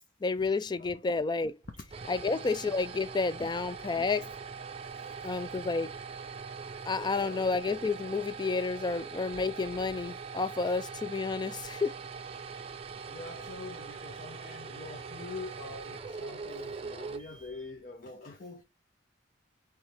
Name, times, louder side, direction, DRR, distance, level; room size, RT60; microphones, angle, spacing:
voice 1, 0.2-1.6 2.1-4.3 5.2-5.9 6.9-12.0, left 4 dB, 25° left, 0.4 m, -30 dB
sound 1, 1.6-17.8, right 5 dB, 35° right, 0.5 m, -42 dB
voice 2, 4.9-5.4 7.1-7.4 11.3-11.4 13.1-18.6, left 3 dB, 50° left, 0.8 m, -45 dB
4.5 x 3.3 x 3.4 m
head